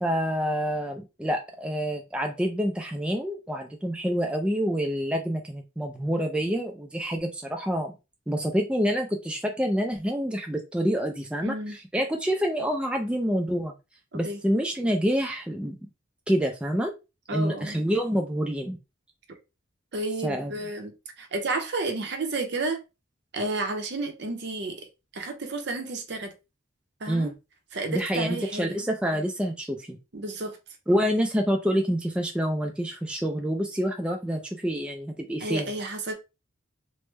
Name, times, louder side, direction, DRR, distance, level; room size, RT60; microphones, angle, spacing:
voice 1, 0.0-7.9 8.3-13.7 14.1-15.8 16.3-16.9 17.3-18.8 20.2-20.5 27.1-27.3 27.9-29.9 30.9-35.7, equal, 5° right, 0.3 m, -27 dB
voice 2, 11.4-11.8 14.1-14.4 17.3-17.8 19.9-22.8 23.3-24.9 25.1-26.3 27.0-27.3 27.7-28.8 30.1-30.6 35.4-36.1, right 2 dB, 60° right, 0.7 m, -31 dB
3.3 x 2.1 x 3.1 m
head